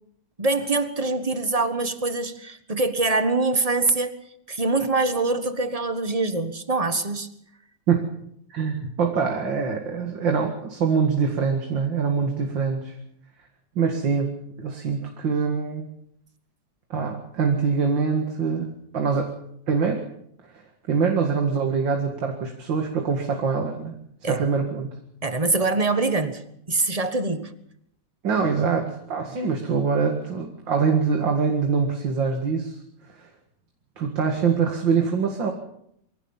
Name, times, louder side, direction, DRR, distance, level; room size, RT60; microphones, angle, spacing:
voice 1, 0.4-4.1 4.5-7.3 24.2-24.4 25.2-26.4 26.7-27.5, right 3 dB, 20° right, 9 dB, 1.4 m, -24 dB
voice 2, 8.5-13.0 13.8-15.9 16.9-18.7 18.9-19.4 19.7-20.0 20.5-20.6 20.9-24.9 28.2-32.8 33.1-33.3 34.0-35.5, right 5 dB, 85° right, 3 dB, 2.7 m, -24 dB
23.5 x 16.5 x 7.3 m, 0.73 s
omnidirectional pair, 2.0 m